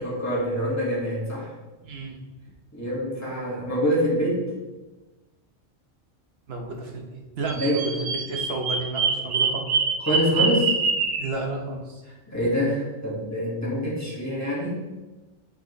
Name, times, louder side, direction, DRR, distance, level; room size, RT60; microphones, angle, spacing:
voice 1, 0.0-1.5 2.7-4.4 7.5-7.8 10.1-10.7 12.3-14.8, equal, 15° left, -7 dB, 1.8 m, -25 dB
voice 2, 1.8-2.2 6.5-9.7 11.2-12.0, right 3 dB, 60° right, 1 dB, 1.1 m, -32 dB
Bird vocalization bird call bird song, 7.5-11.3, right 5 dB, 80° right, 1.0 m, -24 dB
7.3 x 4.1 x 3.1 m, 1.2 s
omnidirectional pair, 1.2 m